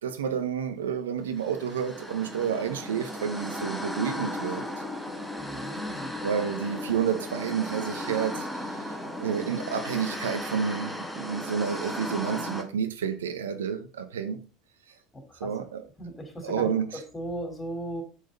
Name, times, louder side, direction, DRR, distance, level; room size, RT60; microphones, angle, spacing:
voice 1, 0.0-4.6 6.2-8.8 9.2-14.4 15.4-15.8 16.4-17.0, right 7 dB, 80° right, 1.5 m, -30 dB
sound 1, 1.4-12.6, left 1 dB, 5° left, 2.9 m, -36 dB
voice 2, 5.4-6.1 15.1-15.5 16.0-18.0, right 1 dB, 20° left, 4.6 m, -37 dB
11.5 x 7.8 x 4.3 m
hypercardioid pair, 75°, 0 cm